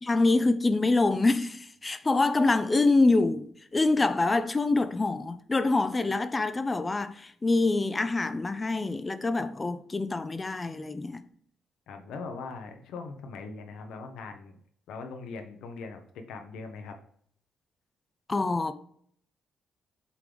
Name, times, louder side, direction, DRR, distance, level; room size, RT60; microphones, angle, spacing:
voice 1, 0.0-11.2 18.3-18.7, left 3 dB, 25° left, 0.5 m, -25 dB
voice 2, 11.9-14.6 14.9-16.0 16.3-16.9, left 4 dB, 85° left, 1.0 m, -40 dB
8.2 x 3.8 x 3.4 m
cardioid pair, 90°, 0 cm